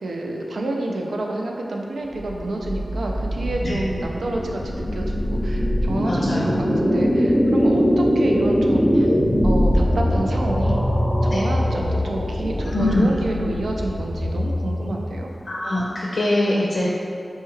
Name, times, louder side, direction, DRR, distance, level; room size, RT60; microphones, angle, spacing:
voice 1, 0.0-9.1 9.4-10.8 11.2-15.3, right 2 dB, 90° right, 0 dB, 0.4 m, -29 dB
sound 1, 2.1-15.3, equal, 15° right, 1.0 m, -22 dB
voice 2, 6.1-6.5 11.3-11.4 12.7-13.1 15.5-16.9, left 1 dB, 65° left, -6 dB, 0.5 m, -23 dB
4.2 x 2.3 x 3.1 m, 2.5 s
cardioid pair, 55°, 0 cm